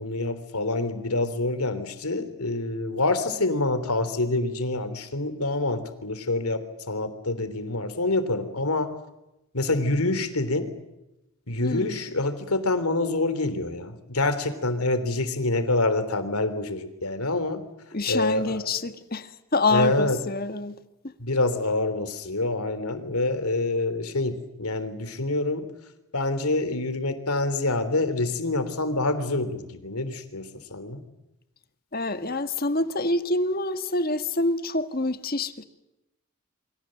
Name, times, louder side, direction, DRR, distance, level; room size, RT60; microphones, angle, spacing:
voice 1, 0.0-8.9 9.5-10.7 11.5-17.6 18.1-18.6 19.7-20.2 21.2-25.7 26.1-31.0, left 2 dB, 85° left, 3.5 m, -26 dB
voice 2, 17.9-20.8 31.9-35.6, left 2 dB, 40° left, 1.5 m, -26 dB
28.5 x 24.5 x 7.8 m
head